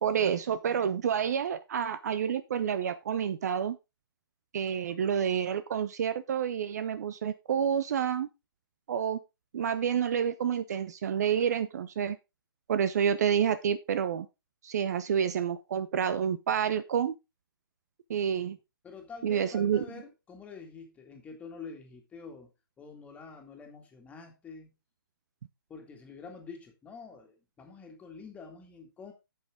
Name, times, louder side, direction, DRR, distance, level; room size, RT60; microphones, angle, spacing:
voice 1, 0.0-3.8 4.5-8.3 8.9-9.2 9.5-12.2 12.7-14.3 14.6-17.1 18.1-18.6 19.2-19.8, right 8 dB, 45° right, 0.8 m, -29 dB
voice 2, 18.8-22.5 22.8-24.7 25.7-29.1, left 5 dB, 10° left, 2.1 m, -47 dB
8.8 x 8.2 x 3.6 m
figure-of-eight pair, 135°, 12 cm